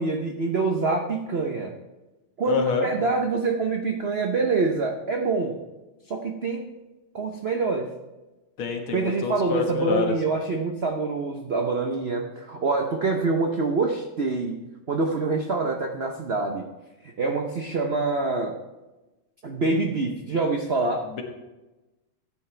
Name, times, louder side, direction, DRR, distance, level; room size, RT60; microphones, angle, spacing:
voice 1, 0.0-1.8 2.4-5.6 6.1-6.8 7.1-7.9 8.9-16.7 17.2-18.6 19.4-21.1, right 3 dB, 75° right, 3 dB, 0.5 m, -26 dB
voice 2, 2.5-2.9 8.6-10.2 21.1-21.2, left 5 dB, 75° left, 3 dB, 2.2 m, -27 dB
15.0 x 9.6 x 3.3 m, 1.1 s
omnidirectional pair, 2.3 m